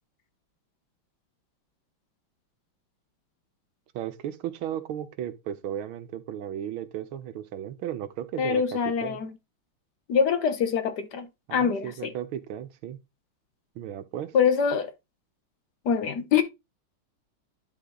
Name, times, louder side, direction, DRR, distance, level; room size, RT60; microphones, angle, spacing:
voice 1, 3.9-9.2 11.5-13.0 13.8-14.3, right 10 dB, 90° right, 1.7 m, -35 dB
voice 2, 8.4-9.3 10.1-12.1 14.3-14.9 15.8-16.4, left 6 dB, 60° left, 1.4 m, -24 dB
11.0 x 3.9 x 3.8 m
omnidirectional pair, 2.2 m